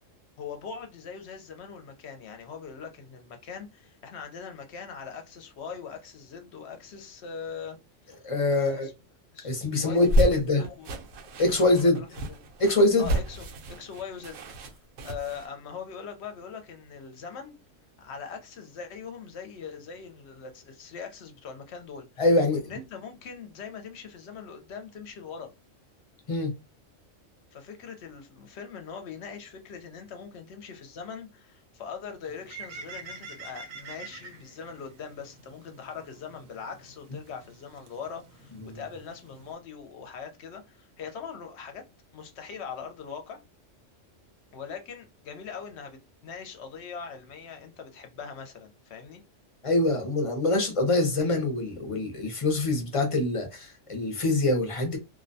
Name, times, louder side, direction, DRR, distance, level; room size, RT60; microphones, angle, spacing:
voice 1, 0.4-7.8 8.5-8.9 9.3-9.5 9.8-10.9 11.6-12.4 13.0-17.6 18.0-22.1 22.5-25.5 27.5-41.8 42.1-43.4 44.5-49.2, left 6 dB, 65° left, 0.8 m, -41 dB
voice 2, 8.2-8.9 9.4-10.6 11.4-12.0 12.6-13.1 22.2-22.6 26.3-26.5 38.7-38.8 49.6-55.0, left 2 dB, 35° left, 0.5 m, -24 dB
sound 1, 9.9-15.5, equal, 90° right, 1.0 m, -30 dB
Bird, 32.2-39.5, right 4 dB, 60° right, 0.7 m, -47 dB
2.5 x 2.1 x 2.6 m
omnidirectional pair, 1.3 m